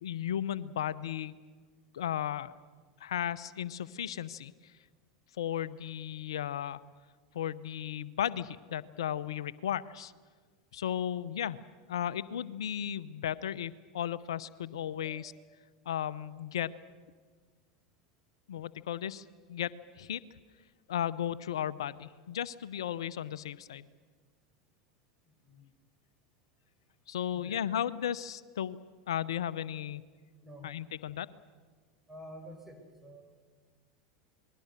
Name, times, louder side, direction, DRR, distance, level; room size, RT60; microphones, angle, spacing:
voice 1, 0.0-1.3 1.9-2.5 3.0-4.5 5.4-6.8 7.3-10.1 10.7-11.6 11.9-15.3 15.9-16.7 18.5-20.2 20.9-23.8 27.1-28.8 29.1-30.0 30.6-31.3, left 10 dB, 75° left, 16 dB, 0.8 m, -35 dB
voice 2, 15.0-15.6 25.2-25.7 27.3-27.6 30.4-30.8 32.1-33.4, equal, 5° right, 3 dB, 5.0 m, -50 dB
28.0 x 21.0 x 6.7 m, 1.5 s
hypercardioid pair, 85°, 3 cm